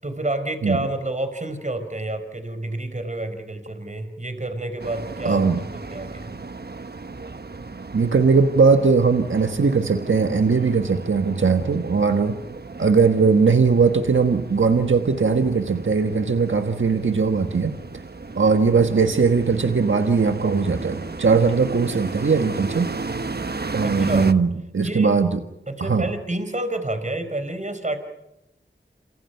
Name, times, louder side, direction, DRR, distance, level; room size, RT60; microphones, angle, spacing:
voice 1, 0.0-6.3 23.8-24.3 24.8-25.2 25.7-28.0, right 1 dB, 40° right, 9 dB, 4.7 m, -29 dB
sound 1, 4.8-24.3, right 3 dB, 55° right, 1.2 m, -35 dB
voice 2, 5.2-5.6 7.9-12.4 12.8-17.8 18.3-22.9 23.7-25.4 25.8-26.1, right 5 dB, 80° right, 6 dB, 1.5 m, -19 dB
28.0 x 28.0 x 5.8 m, 0.87 s
wide cardioid pair, 45°, 20 cm